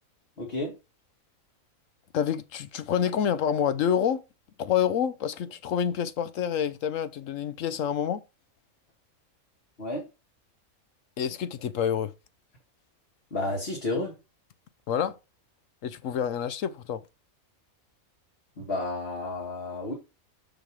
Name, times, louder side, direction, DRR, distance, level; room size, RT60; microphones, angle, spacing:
voice 1, 0.4-0.7 9.8-10.0 13.3-14.1 18.6-19.9, left 2 dB, 45° left, 1.9 m, -31 dB
voice 2, 2.1-4.2 4.6-8.2 11.2-12.1 14.9-15.2 15.8-17.0, left 8 dB, 65° left, 1.0 m, -27 dB
6.7 x 6.3 x 4.8 m
omnidirectional pair, 1.5 m